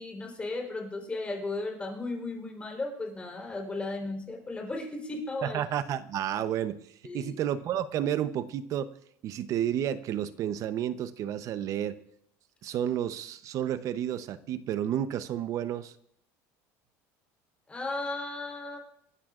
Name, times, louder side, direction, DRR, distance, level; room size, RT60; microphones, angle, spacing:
voice 1, 0.0-5.6 7.0-7.4 17.7-18.8, left 2 dB, 15° left, 1 dB, 3.8 m, -35 dB
voice 2, 5.4-6.8 7.1-8.9 9.2-12.0 12.6-15.9, right 10 dB, 50° right, 13 dB, 0.8 m, -31 dB
27.5 x 12.5 x 2.5 m, 0.71 s
cardioid pair, 130°, 7 cm